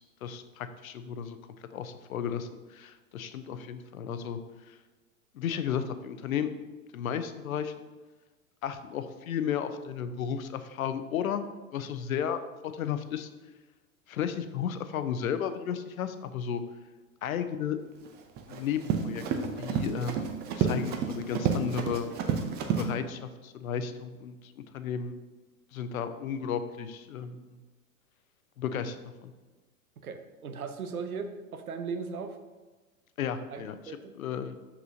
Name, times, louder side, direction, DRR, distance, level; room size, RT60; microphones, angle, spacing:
voice 1, 0.0-1.4 1.7-4.4 4.7-4.8 5.3-6.5 6.9-7.9 8.6-11.4 11.7-13.3 14.1-16.6 17.2-17.8 18.5-22.1 22.7-25.1 25.7-27.6 28.6-29.0 29.2-29.3 33.2-34.5, left 8 dB, 75° left, 10 dB, 0.6 m, -34 dB
Run, 18.1-22.9, right 6 dB, 25° right, 0.5 m, -30 dB
voice 2, 30.0-32.4 33.5-34.1, right 5 dB, 85° right, 8 dB, 0.7 m, -38 dB
6.1 x 5.7 x 2.7 m, 1.2 s
hypercardioid pair, 100°, 42 cm